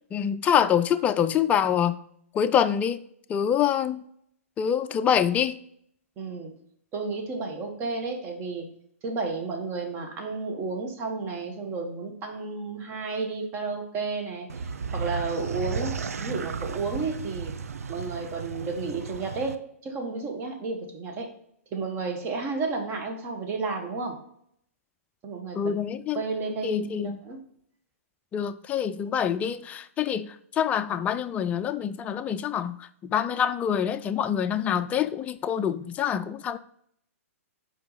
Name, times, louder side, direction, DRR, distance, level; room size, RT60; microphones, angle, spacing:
voice 1, 0.1-2.0 2.3-3.0 3.3-4.0 4.6-5.6 25.6-26.2 26.6-27.2 28.3-36.6, left 8 dB, 20° left, 11 dB, 0.3 m, -25 dB
voice 2, 6.2-6.6 6.9-8.7 9.0-14.5 14.9-17.5 17.9-21.3 21.7-24.2 25.2-25.7 26.1-27.4, right 4 dB, 30° right, 3 dB, 1.3 m, -32 dB
sound 1, 14.5-19.6, right 5 dB, 80° right, 0.5 m, -34 dB
5.7 x 4.5 x 4.1 m, 0.68 s
hypercardioid pair, 130°, 8 cm